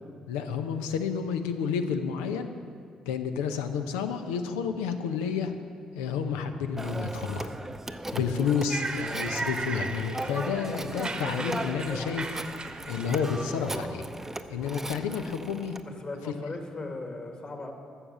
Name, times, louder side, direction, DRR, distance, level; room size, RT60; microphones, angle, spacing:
voice 1, 0.3-2.5 3.1-5.5 5.9-7.5 8.1-12.4 12.9-14.0 14.5-15.8, left 6 dB, 75° left, 7 dB, 0.7 m, -30 dB
Telephone, 6.8-15.8, right 1 dB, 15° right, 0.7 m, -37 dB
sound 1, 8.7-13.6, right 3 dB, 35° right, 1.0 m, -36 dB
voice 2, 15.9-17.7, left 2 dB, 40° left, 3 dB, 2.1 m, -38 dB
12.5 x 7.4 x 6.6 m, 2.4 s
hypercardioid pair, 40°, 3 cm